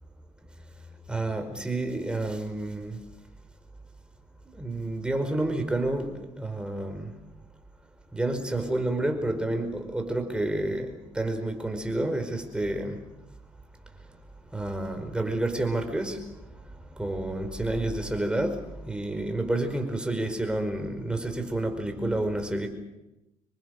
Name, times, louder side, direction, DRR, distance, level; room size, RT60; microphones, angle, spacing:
voice 1, 1.1-3.0 4.5-6.1 6.4-7.1 8.1-13.0 14.5-16.2 17.0-22.7, right 1 dB, 10° right, 6 dB, 4.9 m, -29 dB
27.0 x 23.0 x 6.7 m, 0.93 s
cardioid pair, 105°, 12 cm